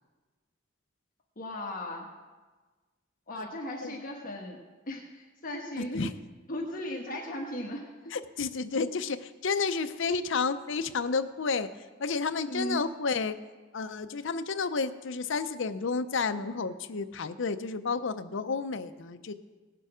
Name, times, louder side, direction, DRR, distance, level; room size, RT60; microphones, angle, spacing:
voice 1, 1.4-2.1 3.3-4.6 4.9-6.0 6.5-8.2 12.5-12.9, left 1 dB, 45° left, -1 dB, 1.3 m, -37 dB
voice 2, 5.8-6.1 8.1-11.7 12.0-13.4 13.7-19.3, left 4 dB, 65° left, 11 dB, 0.6 m, -31 dB
17.5 x 6.8 x 5.0 m, 1.3 s
head